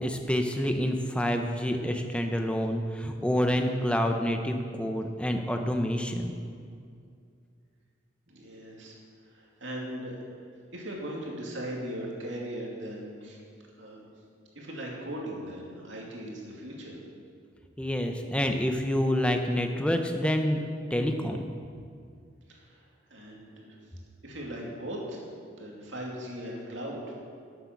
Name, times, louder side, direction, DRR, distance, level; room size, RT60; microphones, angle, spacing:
voice 1, 0.0-6.3 17.8-20.6 20.9-21.4, equal, 5° left, 4 dB, 0.8 m, -27 dB
voice 2, 8.3-8.9 9.3-10.2 10.7-13.4 13.8-14.1 14.6-17.0 22.5-23.8 24.2-25.2 25.5-27.2, equal, 80° right, -2 dB, 2.5 m, -39 dB
13.5 x 7.9 x 6.0 m, 2.3 s
head